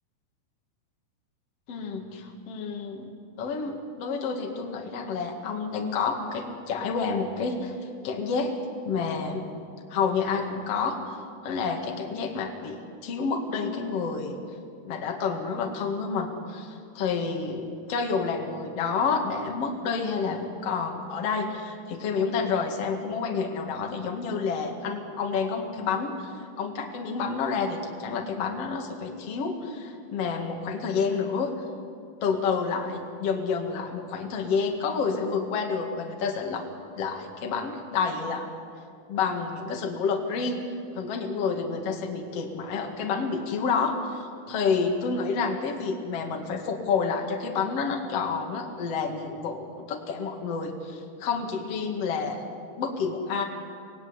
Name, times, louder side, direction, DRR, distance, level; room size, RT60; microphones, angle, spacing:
voice 1, 1.7-3.1 3.4-7.8 8.0-8.6 8.8-9.5 9.9-11.0 11.4-14.3 14.9-26.3 26.6-31.5 32.2-36.6 37.0-38.5 39.1-40.6 40.9-52.4 52.8-53.4, left 5 dB, 45° left, 2 dB, 2.7 m, -29 dB
25.0 x 18.5 x 9.8 m, 2.3 s
omnidirectional pair, 4.2 m